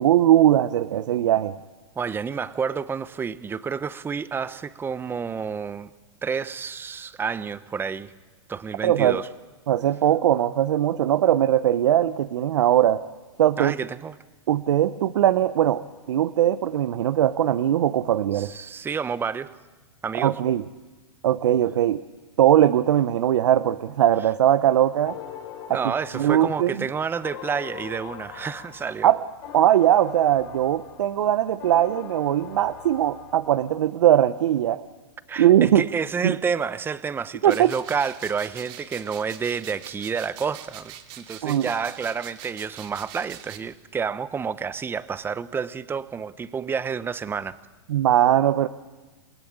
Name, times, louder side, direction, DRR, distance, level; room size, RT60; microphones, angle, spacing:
voice 1, 0.0-1.5 8.8-9.2 9.7-13.0 13.4-13.7 14.5-15.8 16.1-18.5 20.2-20.6 21.2-22.0 22.4-25.2 25.7-26.9 29.0-29.2 29.5-34.8 35.4-35.9 36.2-36.4 37.4-37.7 41.4-41.7 47.9-48.7, right 11 dB, 75° right, 12 dB, 0.9 m, -20 dB
voice 2, 2.0-5.9 6.2-8.1 8.5-9.3 13.6-14.1 18.3-19.5 20.0-20.3 25.7-29.1 35.3-47.6, right 6 dB, 15° right, 15 dB, 0.9 m, -29 dB
sound 1, 25.1-33.8, left 9 dB, 55° left, 4.4 m, -42 dB
sound 2, 37.5-43.6, right 11 dB, 45° right, 2.6 m, -43 dB
28.0 x 19.0 x 8.8 m, 1.2 s
hypercardioid pair, 130°, 16 cm